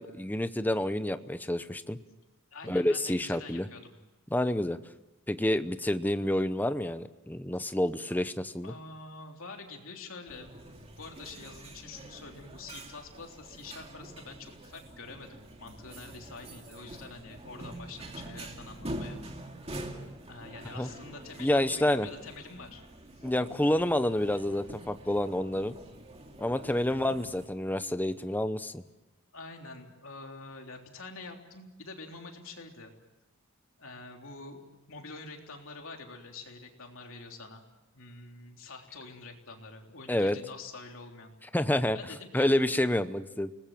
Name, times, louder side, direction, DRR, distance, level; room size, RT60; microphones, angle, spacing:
voice 1, 0.0-2.0 2.6-3.7 4.3-4.8 5.3-8.7 20.8-20.9 21.4-22.1 23.2-25.7 26.4-28.8 40.1-40.4 41.5-42.0 42.3-43.5, left 1 dB, 10° left, 11 dB, 0.8 m, -28 dB
voice 2, 2.5-4.0 7.6-7.7 8.6-10.5 11.0-19.2 20.3-22.8 23.2-23.3 26.9-27.2 29.3-32.9 33.8-34.6 34.9-37.6 37.9-41.3 41.9-42.6, left 3 dB, 60° left, 2 dB, 3.4 m, -46 dB
sound 1, 10.3-27.5, right 1 dB, 30° right, 2.3 m, -45 dB
30.0 x 19.5 x 7.6 m, 1.0 s
head